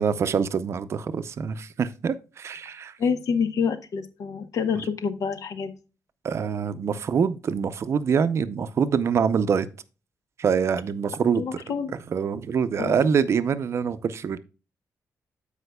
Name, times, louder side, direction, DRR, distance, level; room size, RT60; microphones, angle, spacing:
voice 1, 0.0-2.9 6.2-9.7 10.4-11.4 12.1-14.4, right 6 dB, 50° right, 0.5 m, -25 dB
voice 2, 3.0-5.7 11.4-11.9 12.8-13.0, left 6 dB, 70° left, 0.9 m, -27 dB
14.5 x 5.0 x 2.2 m
wide cardioid pair, 155°, 6 cm